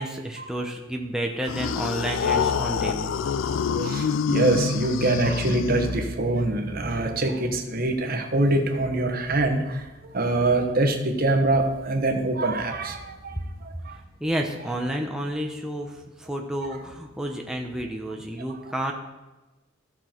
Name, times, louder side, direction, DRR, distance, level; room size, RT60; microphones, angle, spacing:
voice 1, 0.0-3.1 13.4-13.5 13.9-18.9, right 1 dB, 5° right, 1 dB, 0.8 m, -30 dB
sound 1, 1.4-6.3, left 6 dB, 70° left, 0.4 m, -26 dB
voice 2, 3.5-14.0 16.6-16.7, right 2 dB, 50° right, 4 dB, 1.2 m, -24 dB
14.0 x 6.1 x 4.5 m, 1.1 s
head